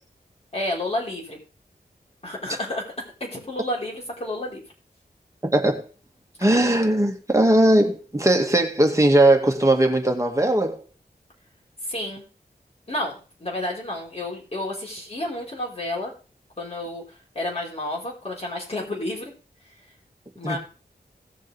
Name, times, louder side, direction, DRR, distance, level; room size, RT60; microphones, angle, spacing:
voice 1, 0.5-1.4 2.2-2.9 3.2-4.6 11.8-12.2 12.9-16.1 16.6-17.0 17.4-19.3 20.4-20.6, left 1 dB, 40° left, -2 dB, 5.0 m, -30 dB
voice 2, 5.4-5.9 6.4-10.8 20.4-20.6, right 1 dB, 20° right, 3 dB, 2.1 m, -19 dB
18.0 x 7.3 x 3.6 m, 0.35 s
wide cardioid pair, 85°, 16 cm